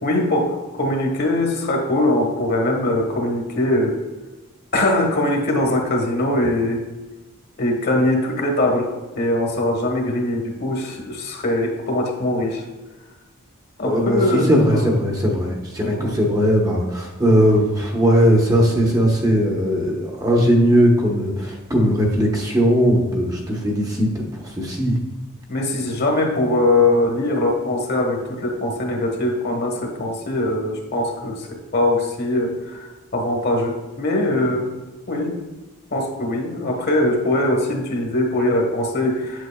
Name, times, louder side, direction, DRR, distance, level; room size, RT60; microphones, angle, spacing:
voice 1, 0.0-4.0 4.7-6.9 7.6-12.6 13.8-14.9 15.8-16.2 25.5-34.7 35.1-35.4 35.9-39.5, left 1 dB, 50° left, 2 dB, 1.3 m, -21 dB
voice 2, 13.8-25.0, equal, 15° right, -1 dB, 0.9 m, -18 dB
8.1 x 7.5 x 2.3 m, 1.1 s
head